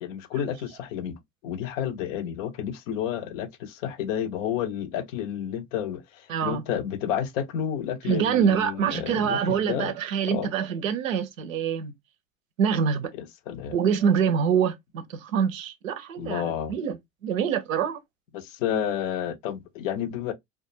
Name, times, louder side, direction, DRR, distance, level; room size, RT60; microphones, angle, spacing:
voice 1, 0.0-9.9 10.3-10.5 13.1-13.8 16.2-16.7 18.3-20.3, left 9 dB, 70° left, 0.6 m, -31 dB
voice 2, 6.3-6.6 8.1-11.9 12.6-13.1 13.7-17.0 17.2-18.0, right 7 dB, 90° right, 0.5 m, -25 dB
2.3 x 2.2 x 2.7 m
hypercardioid pair, 70°, 39 cm